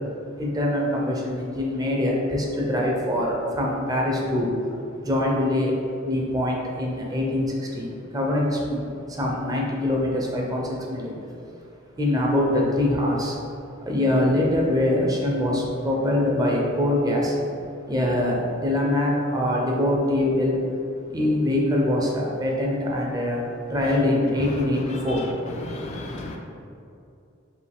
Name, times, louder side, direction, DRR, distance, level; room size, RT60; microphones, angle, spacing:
voice 1, 0.4-4.5 5.0-11.1 12.0-13.4 13.8-17.4 17.9-20.6 21.1-25.3, left 1 dB, 20° right, -2 dB, 0.6 m, -24 dB
voice 2, 25.6-26.4, left 1 dB, 35° left, 0 dB, 0.3 m, -34 dB
4.7 x 2.8 x 3.5 m, 2.6 s
head